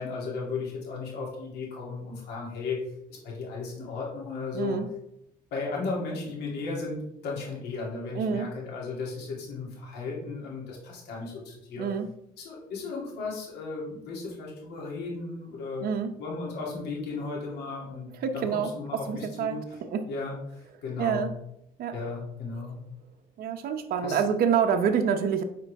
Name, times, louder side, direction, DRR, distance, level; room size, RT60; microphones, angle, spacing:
voice 1, 0.0-2.8 3.1-4.8 5.5-11.9 12.4-19.8 20.1-21.3 21.9-22.8 24.0-24.2, left 3 dB, 80° left, -3 dB, 2.9 m, -35 dB
voice 2, 4.5-4.9 8.1-8.5 11.8-12.1 15.8-16.1 18.2-19.6 19.9-20.1 21.0-21.3 21.8-22.0 23.4-25.4, right 7 dB, 60° right, 5 dB, 0.8 m, -27 dB
8.8 x 4.6 x 3.5 m, 0.79 s
cardioid pair, 110°, 17 cm